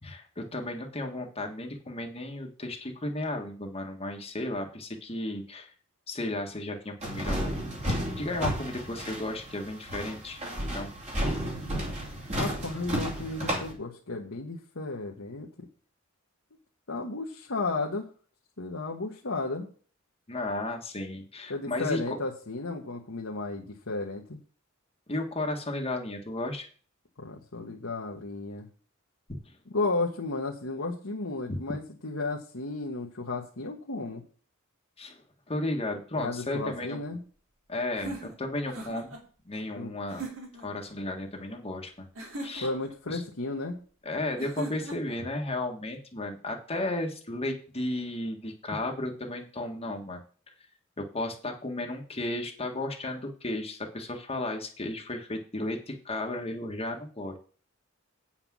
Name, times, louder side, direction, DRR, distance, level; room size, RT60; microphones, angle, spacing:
voice 1, 0.0-5.7 6.1-7.5 7.9-10.4 10.7-10.9 20.3-22.0 25.1-26.7 29.3-29.4 31.5-31.6 35.0-35.2 35.5-37.0 37.7-39.1 39.4-40.2 40.6-42.1 42.4-42.7 43.1-43.2 44.0-50.5 51.0-57.4, left 2 dB, 30° left, 2 dB, 1.5 m, -34 dB
sound 1, 7.0-13.7, equal, 35° right, 2.6 m, -32 dB
voice 2, 12.4-15.5 16.9-18.1 18.6-19.7 21.5-24.4 27.2-28.7 29.7-34.2 36.2-37.2 39.8-39.9 42.6-43.8, left 3 dB, 75° left, -1 dB, 1.3 m, -33 dB
sound 2, 37.9-39.2 40.1-40.7 42.2-42.9 44.4-45.2, right 2 dB, 70° right, 3.0 m, -40 dB
8.8 x 5.9 x 6.1 m, 0.41 s
head